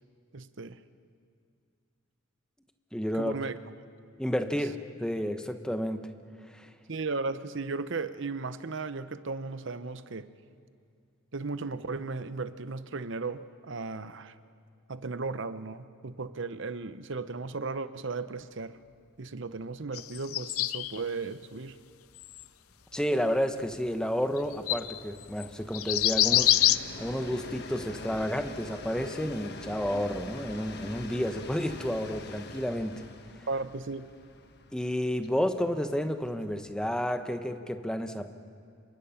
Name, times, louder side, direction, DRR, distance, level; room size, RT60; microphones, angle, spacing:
voice 1, 0.3-0.8 3.1-3.6 6.9-10.3 11.3-14.4 14.9-18.8 19.2-21.8 33.5-34.1, right 3 dB, 60° right, 12 dB, 0.8 m, -35 dB
voice 2, 2.9-3.3 4.2-6.1 6.4-6.7 22.9-33.0 33.4-33.5 34.7-38.3, equal, 5° left, 7 dB, 1.0 m, -31 dB
Train, 18.9-19.0 19.3-19.4 19.7-37.1, left 2 dB, 50° left, 1.3 m, -46 dB
sound 1, 19.9-21.0 22.2-22.4 23.0-23.1 24.4-24.5 24.7-25.0 25.4-25.5 25.7-26.8, left 14 dB, 90° left, 0.6 m, -25 dB
27.0 x 23.5 x 5.8 m, 2.4 s
head